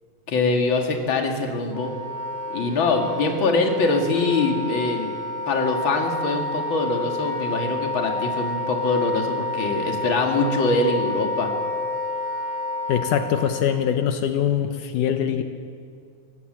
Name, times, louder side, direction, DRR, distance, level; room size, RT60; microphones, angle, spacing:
voice 1, 0.3-1.9 2.5-5.1 5.5-11.5, left 3 dB, 40° left, 2 dB, 2.7 m, -23 dB
Wind instrument woodwind instrument, 1.7-13.6, left 2 dB, 10° left, 3.2 m, -29 dB
voice 2, 12.9-15.4, left 9 dB, 80° left, 7 dB, 2.5 m, -23 dB
24.0 x 18.0 x 7.6 m, 2.2 s
omnidirectional pair, 3.6 m